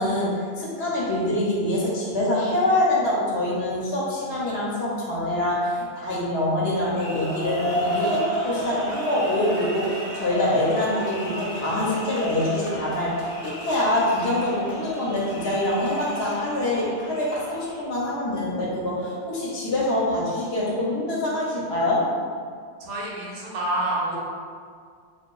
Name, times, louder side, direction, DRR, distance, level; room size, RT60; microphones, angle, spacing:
voice 1, 0.0-22.0, left 1 dB, 70° left, -6 dB, 0.8 m, -25 dB
sound 1, 6.8-17.8, equal, 35° left, 0.5 m, -32 dB
voice 2, 22.8-24.2, right 1 dB, 70° right, -5 dB, 0.8 m, -28 dB
2.7 x 2.3 x 2.2 m, 2.1 s
omnidirectional pair, 1.2 m